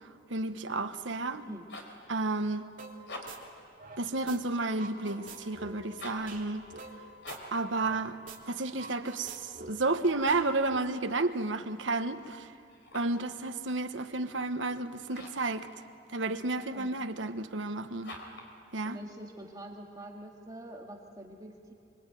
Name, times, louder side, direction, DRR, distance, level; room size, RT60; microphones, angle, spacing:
voice 1, 0.3-1.5 2.1-2.6 4.0-6.6 7.5-8.2 8.5-12.5 12.9-15.7 16.1-18.1 18.7-19.0, right 2 dB, 85° right, 1.3 m, -31 dB
voice 2, 1.3-1.7 16.7-16.9 18.8-21.7, right 1 dB, 20° right, 2.0 m, -45 dB
sound 1, 1.5-2.0 2.9-3.5 5.9-6.3 7.2-7.6 12.7-13.2 15.1-15.5 18.0-18.5, left 1 dB, 65° left, 4.1 m, -45 dB
sound 2, 2.8-3.0 3.3-4.4 4.7-8.0 8.3-8.4 8.7-10.8, right 3 dB, 45° right, 3.1 m, -47 dB
Wind instrument woodwind instrument, 5.1-9.9, left 5 dB, 25° left, 6.1 m, -57 dB
25.0 x 24.5 x 9.2 m
head